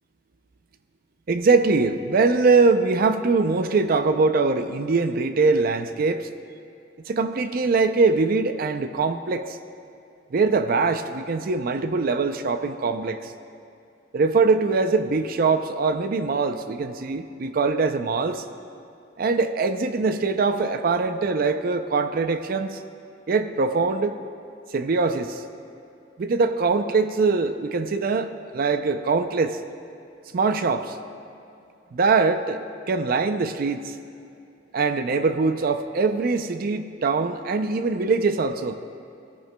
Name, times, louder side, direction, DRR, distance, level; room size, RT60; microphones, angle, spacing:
voice 1, 1.3-6.3 7.1-9.6 10.3-13.3 14.1-18.4 19.2-22.8 23.3-24.2 24.7-25.4 26.2-29.6 30.3-31.0 31.9-33.9 34.7-38.8, right 4 dB, 50° right, 9 dB, 0.4 m, -22 dB
16.5 x 14.0 x 2.2 m, 2.6 s
head